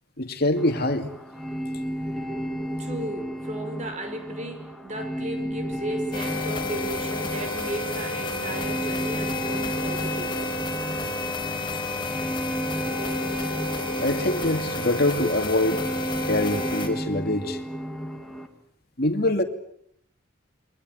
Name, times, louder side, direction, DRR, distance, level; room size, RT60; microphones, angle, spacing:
voice 1, 0.2-1.1 14.0-15.9 16.2-17.6 19.0-19.4, left 1 dB, 50° left, 2.5 m, -24 dB
sound 1, 0.6-18.5, equal, ahead, 2.7 m, -33 dB
voice 2, 2.8-10.6, right 1 dB, 35° right, 5.4 m, -35 dB
sound 2, 6.1-16.9, left 2 dB, 25° left, 4.5 m, -31 dB
29.0 x 23.5 x 7.9 m
head